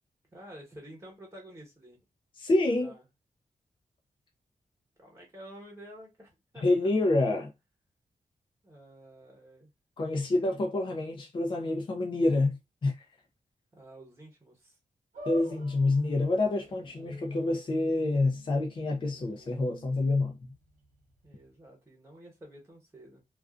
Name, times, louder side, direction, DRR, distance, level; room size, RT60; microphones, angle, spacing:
voice 1, 0.3-2.0 2.8-3.0 5.0-6.7 8.6-9.7 13.7-14.8 21.2-23.2, right 1 dB, 20° right, 1.0 m, -50 dB
voice 2, 2.4-2.9 6.6-7.5 10.0-13.1 15.3-20.4, left 2 dB, 35° left, 0.4 m, -27 dB
sound 1, 15.1-21.6, equal, 70° right, 0.7 m, -50 dB
2.4 x 2.2 x 2.3 m
wide cardioid pair, 125°, 14 cm